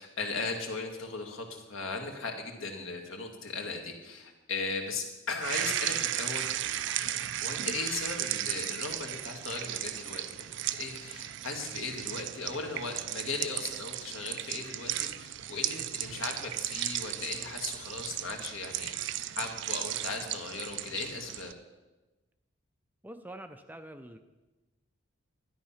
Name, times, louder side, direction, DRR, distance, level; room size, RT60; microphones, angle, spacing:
voice 1, 0.0-6.5 7.4-10.5 10.8-21.5, left 3 dB, 70° left, 3 dB, 2.0 m, -37 dB
sound 1, 5.4-21.5, right 12 dB, 60° right, 0.4 m, -35 dB
voice 2, 23.0-24.2, right 1 dB, 10° right, 8 dB, 0.5 m, -45 dB
12.5 x 10.0 x 5.7 m, 1.1 s
head